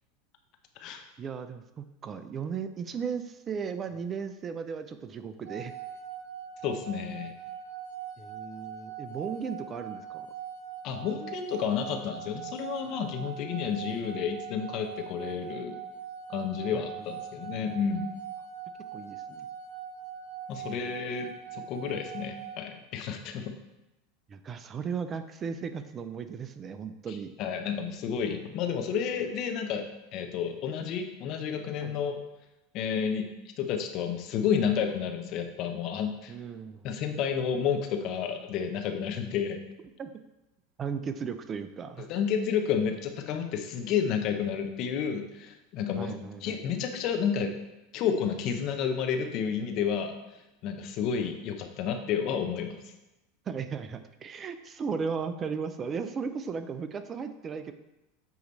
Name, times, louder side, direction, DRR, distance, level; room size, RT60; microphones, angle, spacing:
voice 1, 1.2-5.7 8.2-10.3 16.7-16.9 18.9-19.5 20.5-20.8 24.3-27.3 31.8-31.9 36.3-36.9 40.0-40.1 40.8-42.1 46.0-46.6 53.5-57.7, right 6 dB, 30° right, 10 dB, 0.4 m, -36 dB
sound 1, 5.4-22.6, right 8 dB, 70° right, 1.6 m, -42 dB
voice 2, 6.6-7.3 10.8-15.8 16.3-18.1 20.5-23.5 27.4-29.9 30.1-32.2 32.7-33.3 33.6-36.3 36.8-39.6 42.0-46.1 46.4-47.5 47.9-50.1 50.6-52.8, left 7 dB, 50° left, 5 dB, 0.8 m, -31 dB
8.4 x 3.0 x 4.0 m, 0.98 s
hypercardioid pair, 95°, 0 cm